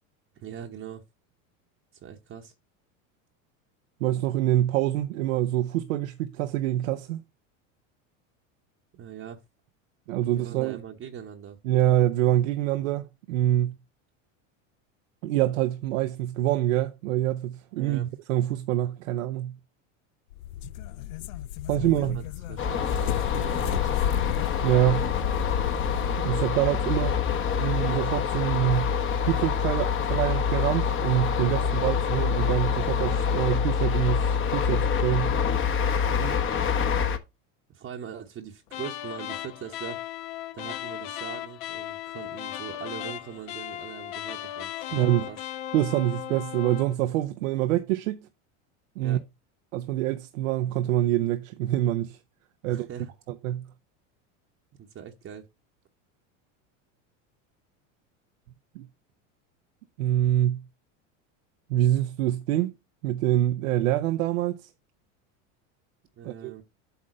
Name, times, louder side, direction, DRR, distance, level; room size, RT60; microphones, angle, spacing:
voice 1, 0.3-1.0 2.0-2.5 8.9-9.4 10.3-11.6 17.8-18.1 21.7-23.9 36.0-36.4 37.7-40.0 40.5-45.4 49.0-49.2 52.6-53.1 54.8-55.5 66.2-66.6, right 8 dB, 35° right, 1.0 m, -41 dB
voice 2, 4.0-7.2 10.1-10.8 11.6-13.7 15.2-19.5 21.7-22.2 24.6-25.1 26.2-27.1 27.6-28.9 29.3-35.4 44.9-45.3 45.7-48.3 49.0-49.2 49.7-52.2 52.6-52.9 53.4-53.7 58.7-58.9 60.0-60.6 61.7-62.7 63.0-64.7 66.2-66.5, right 13 dB, 85° right, 0.8 m, -25 dB
sound 1, 20.3-26.3, left 14 dB, 90° left, 0.6 m, -32 dB
sound 2, 22.6-37.2, left 6 dB, 30° left, 1.1 m, -26 dB
sound 3, 38.7-46.9, left 13 dB, 65° left, 1.2 m, -37 dB
8.2 x 3.7 x 6.3 m
supercardioid pair, 110°, 39 cm